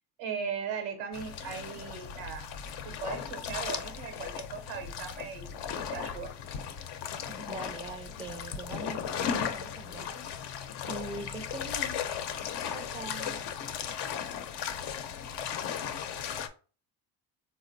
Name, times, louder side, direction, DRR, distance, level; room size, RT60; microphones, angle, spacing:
voice 1, 0.2-2.5 2.8-6.3, right 6 dB, 90° right, 0.9 m, -38 dB
sound 1, 1.1-16.5, left 8 dB, 65° left, 0.6 m, -36 dB
voice 2, 7.3-10.3 10.9-12.0 12.7-13.4, right 3 dB, 15° right, 0.4 m, -42 dB
3.6 x 2.1 x 2.6 m
supercardioid pair, 60°, 45 cm